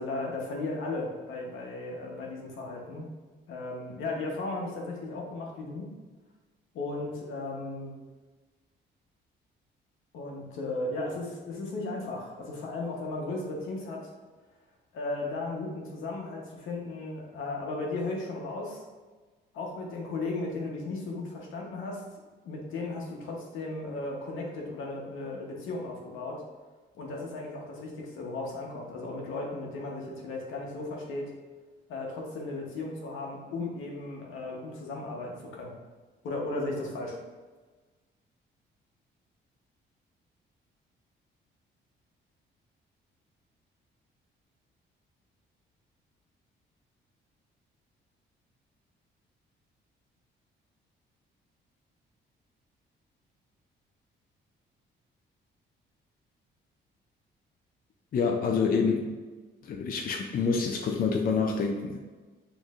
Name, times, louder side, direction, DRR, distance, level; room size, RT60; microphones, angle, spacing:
voice 1, 0.0-3.1 3.5-5.9 6.7-7.9 10.1-14.1 14.9-18.8 19.5-22.0 22.4-26.4 26.9-31.2 31.9-35.7 36.2-37.2, left 2 dB, 85° left, -1 dB, 1.0 m, -35 dB
voice 2, 58.1-59.1 59.6-62.1, left 5 dB, 45° left, 2 dB, 0.5 m, -27 dB
6.2 x 3.2 x 2.5 m, 1.3 s
cardioid pair, 90°, 20 cm